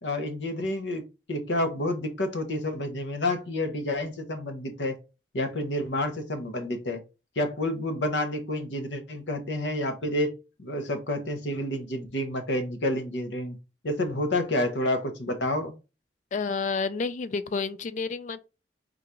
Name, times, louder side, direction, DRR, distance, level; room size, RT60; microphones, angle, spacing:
voice 1, 0.0-5.0 5.3-7.0 7.4-10.3 10.6-13.6 13.8-15.7, left 1 dB, 80° left, 0.8 m, -29 dB
voice 2, 16.3-18.4, left 4 dB, 40° left, 0.3 m, -30 dB
3.8 x 2.4 x 4.3 m
head